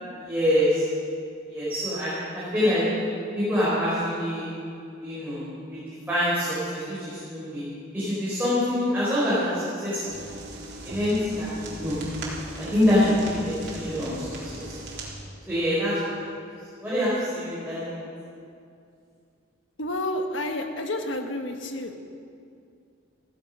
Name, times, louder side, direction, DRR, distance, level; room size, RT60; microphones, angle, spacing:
voice 1, 0.1-0.8 1.5-2.8 3.3-4.5 5.0-5.8 6.1-7.6 7.9-10.2 10.8-12.0 12.6-14.8 15.5-16.2 16.8-17.9, left 1 dB, 10° right, -11 dB, 4.9 m, -25 dB
sound 1, 10.1-15.1, right 2 dB, 55° right, 3.6 m, -38 dB
voice 2, 19.8-22.1, left 1 dB, 65° left, 5 dB, 1.5 m, -30 dB
15.5 x 15.5 x 5.5 m, 2.5 s
head